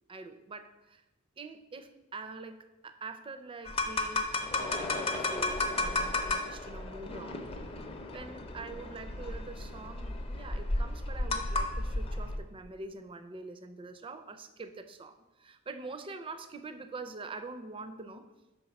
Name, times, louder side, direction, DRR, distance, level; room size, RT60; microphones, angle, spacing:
voice 1, 0.1-1.0 1.4-7.5 8.1-18.3, right 3 dB, 25° right, 9 dB, 0.4 m, -45 dB
sound 1, 3.6-12.4, left 2 dB, 25° left, 0.5 m, -33 dB
5.3 x 4.1 x 5.7 m, 1.0 s
head